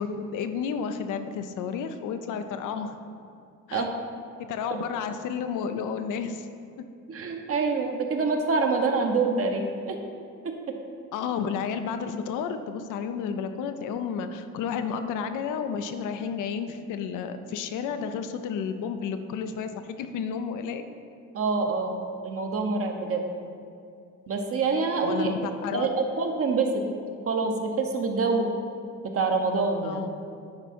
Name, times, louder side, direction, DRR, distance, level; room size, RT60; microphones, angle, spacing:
voice 1, 0.0-3.0 3.7-3.8 4.4-6.5 11.1-19.7 20.0-20.8 25.0-25.9 29.8-30.1, left 6 dB, 85° left, 8 dB, 0.5 m, -31 dB
voice 2, 7.1-10.0 10.4-10.8 21.3-22.0 22.2-23.2 24.3-26.8 27.2-28.5 29.0-30.0, right 4 dB, 50° right, 3 dB, 0.9 m, -26 dB
9.6 x 3.6 x 4.3 m, 2.4 s
cardioid pair, 90°, 30 cm